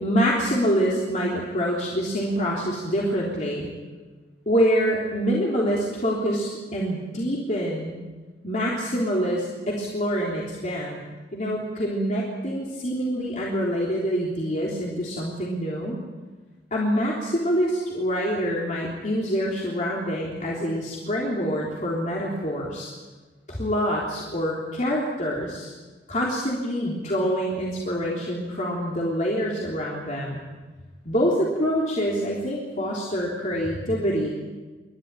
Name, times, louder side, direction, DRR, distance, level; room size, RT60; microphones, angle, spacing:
voice 1, 0.0-3.7 4.4-7.9 8.4-11.0 11.3-16.0 16.7-22.9 23.5-25.7 26.1-30.4 31.0-34.3, equal, 40° left, -4 dB, 3.5 m, -26 dB
28.5 x 13.0 x 9.1 m, 1.3 s
head